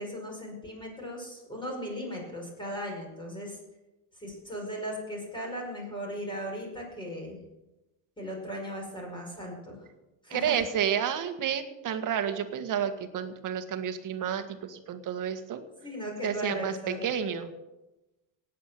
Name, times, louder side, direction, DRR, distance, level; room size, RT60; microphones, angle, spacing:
voice 1, 0.0-3.6 4.2-7.4 8.2-9.8 10.2-10.6 15.8-17.1, equal, 10° left, -1 dB, 5.3 m, -37 dB
voice 2, 10.3-15.6 16.2-17.5, right 8 dB, 45° right, 9 dB, 1.7 m, -30 dB
18.5 x 8.6 x 7.6 m, 1.0 s
cardioid pair, 140°, 43 cm